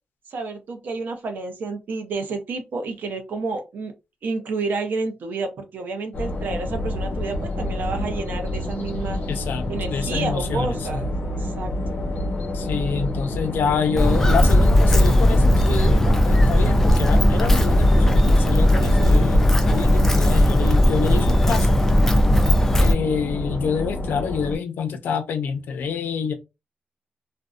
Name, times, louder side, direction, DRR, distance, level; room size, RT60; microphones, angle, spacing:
voice 1, 0.3-3.9 4.2-9.2 9.7-11.1 11.4-12.1, right 3 dB, 70° right, 0.6 m, -30 dB
sound 1, 6.1-24.5, left 1 dB, 60° left, 0.8 m, -29 dB
voice 2, 9.3-11.0 12.5-21.8 22.8-26.3, left 6 dB, 85° left, 0.5 m, -27 dB
Walk footsteps, 14.0-22.9, equal, 10° left, 0.4 m, -17 dB
2.6 x 2.1 x 2.3 m
wide cardioid pair, 125°, 3 cm